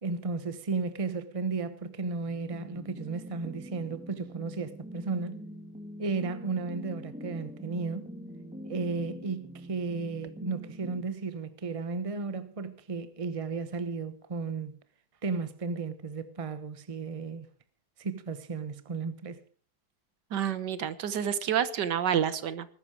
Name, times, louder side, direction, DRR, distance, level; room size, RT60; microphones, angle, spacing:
voice 1, 0.0-5.4 6.0-8.1 8.6-14.8 15.2-17.5 18.0-19.4, right 4 dB, 25° right, 1.0 m, -34 dB
sound 1, 2.3-11.0, equal, 5° right, 1.8 m, -44 dB
voice 2, 20.3-22.7, right 9 dB, 80° right, 1.8 m, -28 dB
20.0 x 12.5 x 4.9 m
omnidirectional pair, 1.8 m